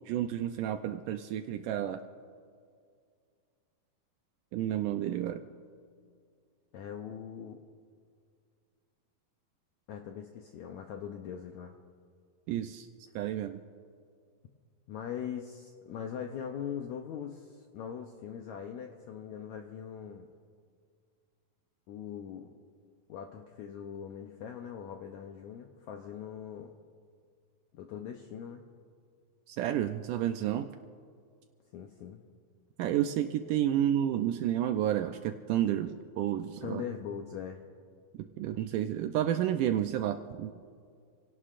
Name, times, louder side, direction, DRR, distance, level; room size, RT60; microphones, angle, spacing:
voice 1, 0.0-2.0 4.5-5.5 12.5-12.9 13.2-13.6 29.5-30.7 32.8-36.8 38.2-40.5, right 11 dB, 80° right, 7 dB, 1.9 m, -30 dB
voice 2, 6.7-7.6 9.9-11.7 14.9-20.3 21.9-22.5 23.1-26.7 27.7-28.6 31.7-32.3 36.6-37.6, left 8 dB, 80° left, 4 dB, 1.6 m, -41 dB
28.5 x 17.5 x 2.5 m, 2.2 s
omnidirectional pair, 4.2 m